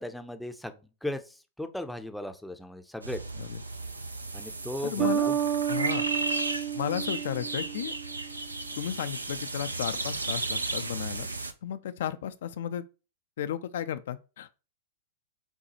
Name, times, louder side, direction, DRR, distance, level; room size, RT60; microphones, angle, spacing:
voice 1, 0.0-3.2 4.3-5.4, left 1 dB, ahead, 0.6 m, -37 dB
sound 1, 3.0-11.5, right 3 dB, 85° right, 0.5 m, -34 dB
voice 2, 4.8-5.3 5.7-6.0 6.7-7.9 8.8-11.3 11.6-12.8 13.4-14.5, left 10 dB, 60° left, 0.4 m, -34 dB
Bass guitar, 5.0-8.5, right 10 dB, 45° right, 0.7 m, -31 dB
6.7 x 2.3 x 2.8 m
figure-of-eight pair, 100°, 0 cm